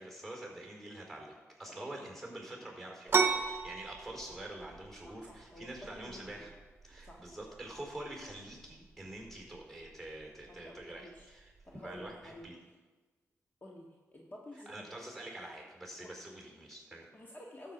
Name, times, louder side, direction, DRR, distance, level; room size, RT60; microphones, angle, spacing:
voice 1, 0.0-6.5 6.8-11.5 11.8-12.6 14.7-17.1, right 1 dB, ahead, 0 dB, 4.4 m, -46 dB
voice 2, 1.7-2.0 5.1-6.5 7.0-7.2 10.5-11.3 11.6-12.5 13.6-14.9 16.0-16.1 17.1-17.7, left 1 dB, 35° left, -2 dB, 1.6 m, -51 dB
sound 1, 3.1-12.5, right 5 dB, 45° right, 0.9 m, -38 dB
12.5 x 7.6 x 5.2 m, 1.3 s
cardioid pair, 55°, 6 cm